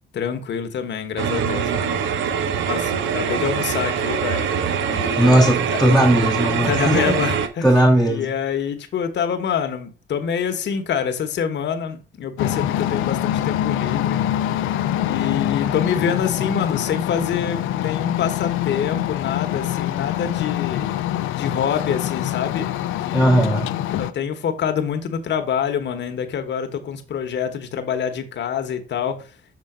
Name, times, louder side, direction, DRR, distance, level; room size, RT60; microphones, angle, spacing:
voice 1, 0.1-2.0 2.7-5.8 6.6-7.7 8.1-14.2 15.0-21.0 21.3-23.5 24.0-29.2, left 7 dB, 65° left, 1.2 m, -26 dB
sound 1, 1.2-7.5, right 7 dB, 70° right, 0.8 m, -23 dB
voice 2, 5.2-7.2 7.6-8.3 23.1-23.7, right 1 dB, ahead, 1.1 m, -17 dB
sound 2, 12.4-24.1, left 12 dB, 85° left, 0.5 m, -24 dB
6.9 x 3.6 x 4.9 m
cardioid pair, 90°, 20 cm